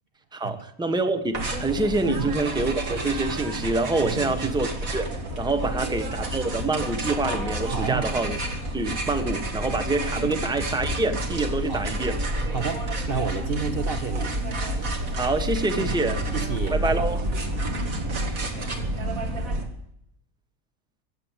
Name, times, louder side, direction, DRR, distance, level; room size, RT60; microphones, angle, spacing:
voice 1, 0.3-8.4 8.7-12.2 15.1-16.2 16.7-17.2, right 2 dB, 5° right, 8 dB, 1.0 m, -26 dB
sound 1, 1.3-19.6, right 1 dB, 70° right, 2.5 m, -29 dB
voice 2, 4.0-4.6 5.6-5.8 7.7-8.1 10.2-10.3 11.7-11.8 12.5-14.4 15.7-16.0 16.3-17.0, right 5 dB, 45° right, 8 dB, 1.0 m, -31 dB
sound 2, 13.7-17.6 18.4-18.5, right 3 dB, 70° left, 7.3 m, -41 dB
15.5 x 7.8 x 9.7 m, 0.74 s
omnidirectional pair, 1.5 m